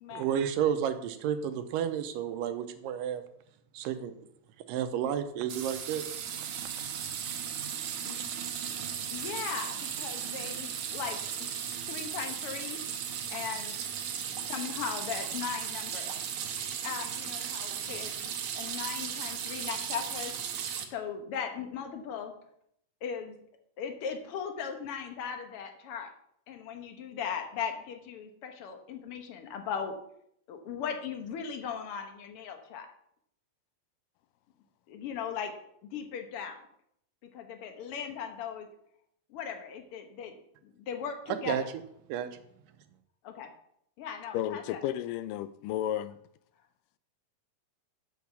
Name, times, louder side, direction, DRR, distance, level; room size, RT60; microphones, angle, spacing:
voice 1, 0.1-3.2 3.7-4.2 4.7-6.1 6.4-6.6 41.3-41.6 42.1-42.3, right 9 dB, 90° right, 2.4 m, -31 dB
sound 1, 5.5-20.9, right 8 dB, 70° right, 2.2 m, -36 dB
voice 2, 8.6-11.5 11.9-12.8 13.3-13.7 14.1-16.1 16.8-20.3 20.9-22.3 23.0-23.4 23.8-26.1 26.5-29.9 30.5-32.9 34.9-35.5 35.9-36.6 37.3-38.7 39.3-40.3 40.9-41.5 43.2-43.5 44.0-44.8, left 7 dB, 65° left, 1.4 m, -38 dB
voice 3, 44.3-46.2, left 11 dB, 80° left, 2.1 m, -32 dB
8.3 x 6.1 x 6.9 m
omnidirectional pair, 3.9 m